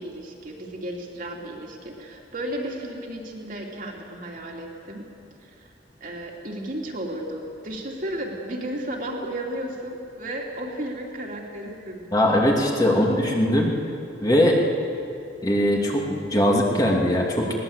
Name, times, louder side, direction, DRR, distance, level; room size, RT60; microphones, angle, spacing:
voice 1, 0.0-5.0 5.4-5.7 6.0-12.1 12.9-13.1, right 1 dB, 45° right, -1 dB, 2.9 m, -33 dB
voice 2, 12.1-13.1 13.4-13.7 14.2-14.6 15.4-17.5, left 1 dB, 20° left, -1 dB, 2.6 m, -20 dB
21.0 x 18.5 x 8.2 m, 2.5 s
head